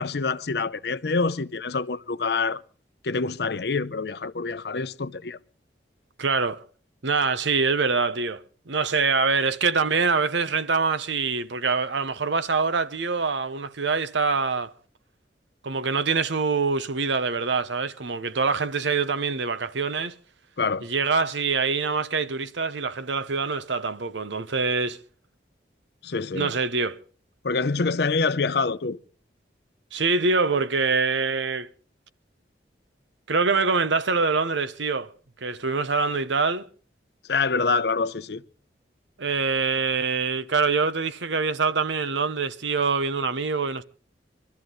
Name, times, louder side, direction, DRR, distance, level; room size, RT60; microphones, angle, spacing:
voice 1, 0.0-2.6 3.0-5.4 20.6-20.9 26.0-26.5 27.4-29.0 37.3-38.4, left 4 dB, 65° left, 0.6 m, -26 dB
voice 2, 6.2-6.6 7.0-14.7 15.6-20.2 20.8-25.0 26.3-27.0 29.9-31.7 33.3-35.1 35.4-36.7 39.2-43.8, right 4 dB, 90° right, 0.9 m, -25 dB
23.5 x 13.0 x 3.9 m
head